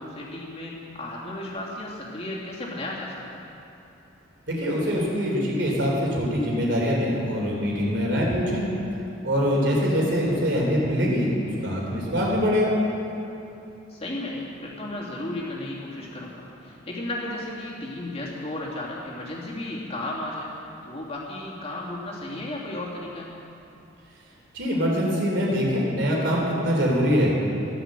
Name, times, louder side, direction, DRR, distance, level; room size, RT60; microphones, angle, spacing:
voice 1, 0.0-3.4 9.6-9.9 13.9-20.5 20.8-23.3, left 1 dB, 35° left, -4 dB, 3.0 m, -34 dB
voice 2, 4.5-8.6 9.2-12.8 24.5-27.3, equal, 70° right, -2 dB, 3.9 m, -23 dB
14.0 x 11.5 x 7.7 m, 2.9 s
head